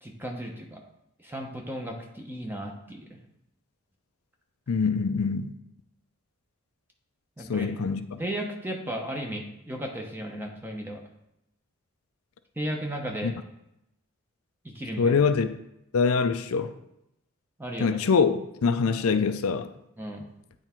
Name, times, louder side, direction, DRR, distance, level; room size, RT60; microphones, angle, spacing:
voice 1, 0.0-0.8 1.2-3.2 7.4-7.7 8.2-11.0 12.6-13.4 14.6-15.2 17.6-18.0 20.0-20.2, right 1 dB, 10° right, 1 dB, 0.8 m, -35 dB
voice 2, 4.7-5.5 7.5-8.2 13.2-13.3 15.0-15.5 15.9-16.7 17.8-19.7, left 5 dB, 85° left, 10 dB, 0.5 m, -24 dB
8.9 x 3.5 x 4.4 m, 0.83 s
head